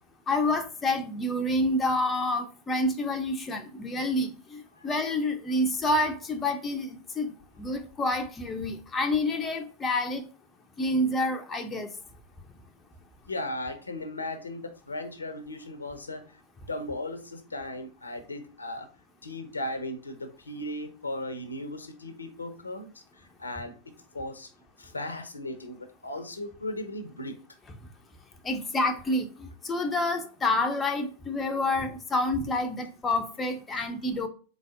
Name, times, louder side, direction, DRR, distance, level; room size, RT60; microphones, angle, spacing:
voice 1, 0.3-10.2 10.8-11.9 28.4-34.3, left 1 dB, 15° left, 0.6 m, -28 dB
voice 2, 13.3-16.4 16.7-18.9 19.2-22.9 23.2-23.8 24.1-24.5 24.8-27.4, left 1 dB, 80° left, 0.7 m, -36 dB
4.0 x 3.7 x 2.5 m
figure-of-eight pair, 90°, 0 cm